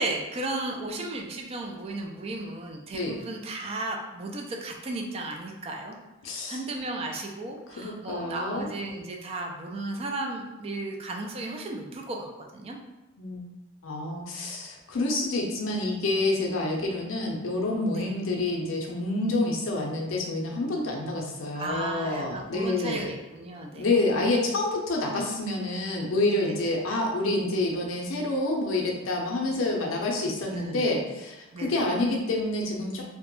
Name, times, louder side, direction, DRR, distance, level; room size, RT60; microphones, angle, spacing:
voice 1, 0.0-5.9 6.5-12.3 12.5-12.8 14.3-14.5 17.9-18.1 21.5-23.9 26.4-26.7 30.5-30.8 31.5-31.8, right 2 dB, 30° right, 1 dB, 0.3 m, -34 dB
voice 2, 6.2-6.6 7.8-8.7 13.2-13.4 13.8-23.1 23.7-33.0, left 2 dB, 75° left, 0 dB, 0.5 m, -28 dB
2.2 x 2.0 x 2.9 m, 1.0 s
head